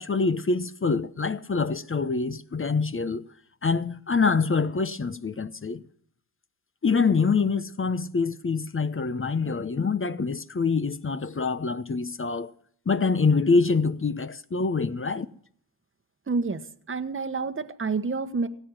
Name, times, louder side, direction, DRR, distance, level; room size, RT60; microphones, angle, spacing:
voice 1, 0.0-3.2 3.6-5.8 6.8-12.5 12.9-15.3, left 4 dB, 25° left, 0.9 m, -25 dB
voice 2, 16.3-16.6 16.9-18.5, right 4 dB, 25° right, 1.3 m, -28 dB
17.0 x 8.7 x 7.5 m
supercardioid pair, 45°, 47 cm